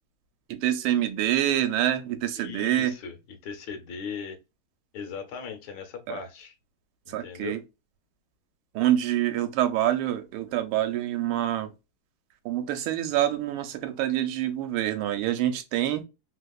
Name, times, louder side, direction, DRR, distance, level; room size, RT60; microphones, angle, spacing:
voice 1, 0.5-2.9 6.1-6.2 7.1-7.6 8.7-11.7 12.4-16.0, right 12 dB, 80° right, 1.4 m, -26 dB
voice 2, 2.4-4.4 4.9-6.5 7.1-7.6, left 6 dB, 70° left, 1.3 m, -38 dB
3.4 x 2.7 x 2.2 m
omnidirectional pair, 2.3 m